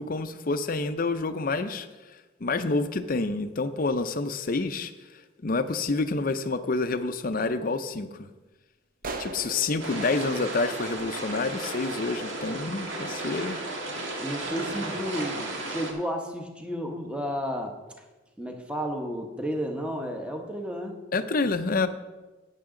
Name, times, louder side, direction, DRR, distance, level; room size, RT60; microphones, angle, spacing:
voice 1, 0.0-1.9 2.4-4.9 5.4-8.3 9.2-13.6 21.1-21.9, left 3 dB, 45° left, 10 dB, 0.6 m, -28 dB
sound 1, 9.0-11.6, right 3 dB, 45° right, 0.8 m, -40 dB
sound 2, 9.8-15.9, right 2 dB, 75° right, 1.8 m, -34 dB
voice 2, 14.1-17.8 18.4-21.0, equal, 5° right, 3 dB, 1.0 m, -32 dB
12.0 x 9.1 x 3.8 m, 1.2 s
head